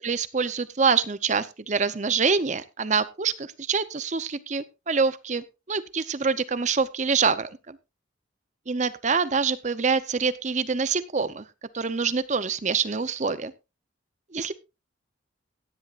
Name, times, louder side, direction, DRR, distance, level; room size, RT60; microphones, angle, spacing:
voice 1, 0.0-7.5 8.7-11.4 11.7-13.5 14.3-14.5, right 5 dB, 35° right, 14 dB, 0.6 m, -25 dB
16.5 x 11.0 x 2.5 m, 0.27 s
head